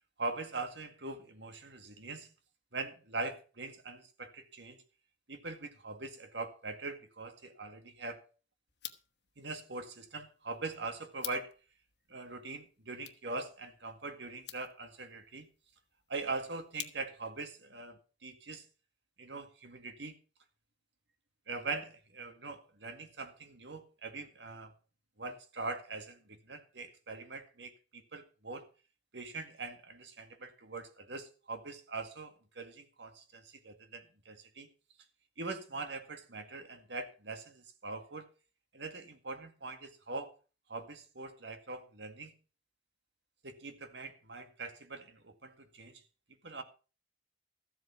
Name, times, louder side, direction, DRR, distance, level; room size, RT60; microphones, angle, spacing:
voice 1, 0.2-2.3 2.7-4.8 5.3-8.3 9.4-11.5 12.1-15.5 16.1-18.7 19.2-20.2 21.5-24.7 25.2-28.7 29.1-34.7 35.4-38.3 38.7-40.4 40.7-42.3 43.4-46.0 46.4-46.6, right 3 dB, 65° right, 2.0 m, -42 dB
sound 1, 8.7-17.4, left 13 dB, 60° left, 1.1 m, -51 dB
14.5 x 7.8 x 5.8 m
head